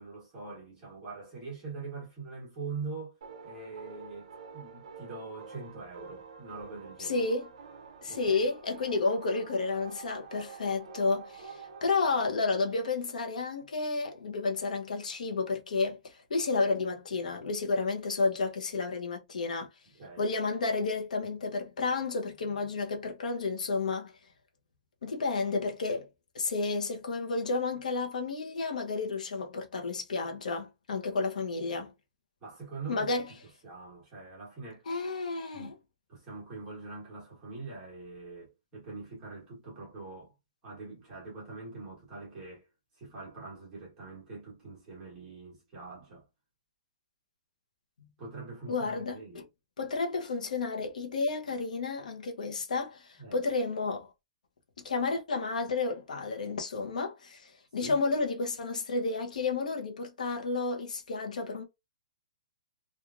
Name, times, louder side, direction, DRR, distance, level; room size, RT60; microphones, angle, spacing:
voice 1, 0.0-7.3 8.1-8.5 19.9-20.3 32.4-33.1 33.6-34.8 35.5-35.7 36.1-40.3 40.6-42.7 43.0-46.3 48.2-49.4 53.2-53.4 57.8-58.0, right 4 dB, 15° right, 1.1 m, -43 dB
sound 1, 3.2-11.9, right 5 dB, 50° right, 0.6 m, -48 dB
voice 2, 7.0-7.5 8.0-19.7 20.2-24.1 25.0-26.1 26.3-31.9 32.9-33.3 34.9-35.7 48.7-49.4 49.8-54.1 54.8-61.6, left 3 dB, 75° left, 0.8 m, -31 dB
3.0 x 2.4 x 2.4 m
hypercardioid pair, 180°, 4 cm